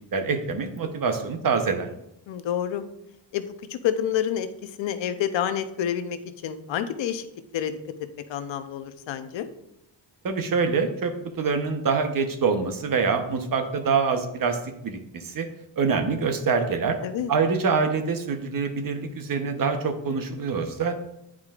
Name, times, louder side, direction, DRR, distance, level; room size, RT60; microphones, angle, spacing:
voice 1, 0.1-1.9 10.2-11.1 11.4-15.5 15.8-17.0 17.3-21.0, right 5 dB, 50° right, 6 dB, 0.9 m, -25 dB
voice 2, 2.3-2.8 3.3-3.4 3.7-7.3 7.5-7.7 8.3-9.5 17.0-17.3, left 9 dB, 80° left, 10 dB, 0.7 m, -28 dB
9.3 x 4.9 x 2.4 m, 0.84 s
cardioid pair, 90°, 44 cm